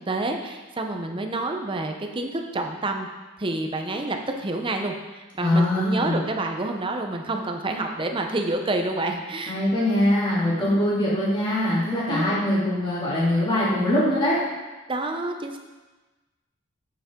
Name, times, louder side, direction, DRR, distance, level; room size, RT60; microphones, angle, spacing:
voice 1, 0.1-3.1 3.4-9.6 10.6-10.8 12.1-12.4 14.9-15.6, right 2 dB, 25° right, 4 dB, 0.7 m, -28 dB
voice 2, 5.4-6.2 9.5-14.4, left 1 dB, 25° left, -8 dB, 2.5 m, -22 dB
8.5 x 6.8 x 3.7 m, 1.2 s
head